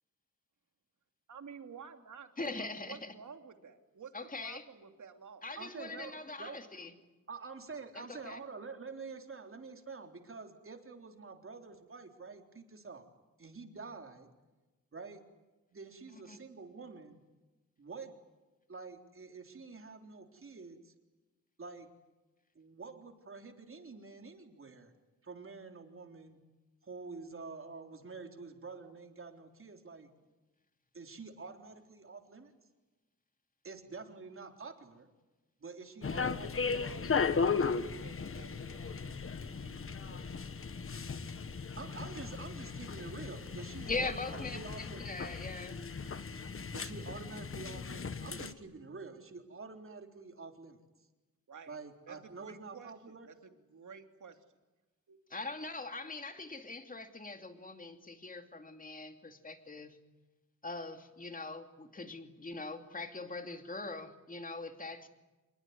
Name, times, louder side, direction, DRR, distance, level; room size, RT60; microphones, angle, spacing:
voice 1, 1.3-5.4 36.2-40.2 51.5-51.8 52.1-54.4 55.1-55.2, right 6 dB, 70° right, 6 dB, 3.0 m, -52 dB
voice 2, 2.4-3.1 4.1-4.6 5.4-6.9 8.0-8.4 16.3-16.4 43.9-45.8 55.3-59.9 60.6-65.1, left 3 dB, 25° left, 6 dB, 2.7 m, -41 dB
voice 3, 5.6-6.1 6.4-6.6 7.3-13.0 13.4-14.3 14.9-15.2 15.7-17.2 17.8-18.1 18.7-20.9 21.6-21.9 22.6-24.9 25.2-26.4 26.8-30.1 30.9-32.5 33.6-35.1 35.6-37.1 41.8-45.1 46.7-50.8 51.7-53.3, right 4 dB, 45° right, 4 dB, 3.7 m, -47 dB
sound 1, 36.0-48.5, left 5 dB, 45° left, 1.4 m, -36 dB
27.0 x 22.0 x 9.5 m, 1.1 s
wide cardioid pair, 140°, 31 cm